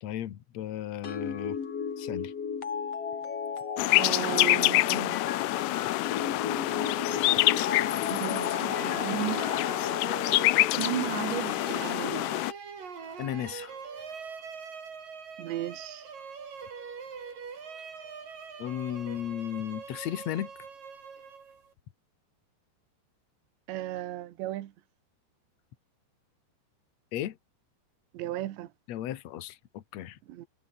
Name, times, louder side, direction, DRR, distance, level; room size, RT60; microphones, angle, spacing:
voice 1, 0.0-1.6 2.0-2.3 13.2-13.7 18.6-20.5 27.1-27.4 28.9-30.2, left 11 dB, 65° left, 1.7 m, -35 dB
sound 1, 1.0-10.4, left 6 dB, 40° left, 3.3 m, -35 dB
sound 2, 3.8-12.5, left 20 dB, 80° left, 2.5 m, -26 dB
voice 2, 4.0-5.2 8.1-9.5 10.3-10.4 10.7-12.3 15.4-16.1 23.7-24.7 28.1-28.7 30.3-30.5, right 14 dB, 80° right, 3.6 m, -35 dB
sound 3, 6.7-21.7, right 6 dB, 50° right, 5.8 m, -43 dB
omnidirectional pair, 5.1 m